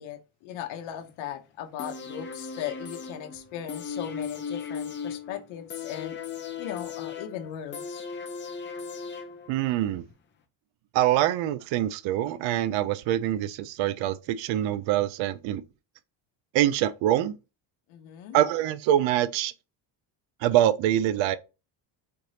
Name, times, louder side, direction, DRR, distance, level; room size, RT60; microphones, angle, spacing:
voice 1, 0.0-6.2 6.6-8.0 17.9-18.4, left 9 dB, 75° left, 0.9 m, -38 dB
sound 1, 1.8-9.8 10.1-10.2, left 6 dB, 25° left, 0.5 m, -37 dB
voice 2, 9.5-10.0 10.9-15.6 16.5-17.3 18.3-19.5 20.4-21.4, right 12 dB, 75° right, 0.5 m, -24 dB
4.4 x 3.1 x 2.7 m
cardioid pair, 130°, 47 cm